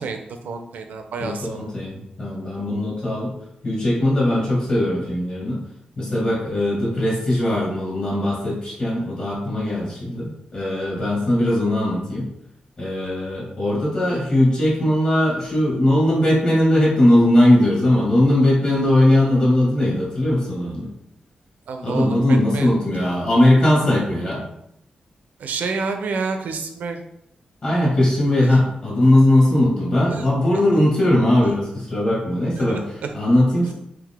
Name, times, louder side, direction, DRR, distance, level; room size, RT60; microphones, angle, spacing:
voice 1, 0.0-1.6 21.7-23.1 25.4-27.0 28.4-28.6 30.1-30.3 30.7-30.8 31.4-31.5 32.6-33.1, right 4 dB, 85° right, 6 dB, 0.5 m, -29 dB
voice 2, 1.2-3.3 3.6-5.6 6.0-12.3 12.8-20.9 21.8-24.4 27.6-32.8 33.1-33.7, left 1 dB, 45° left, -5 dB, 1.5 m, -19 dB
3.8 x 2.8 x 3.5 m, 0.77 s
wide cardioid pair, 155°, 3 cm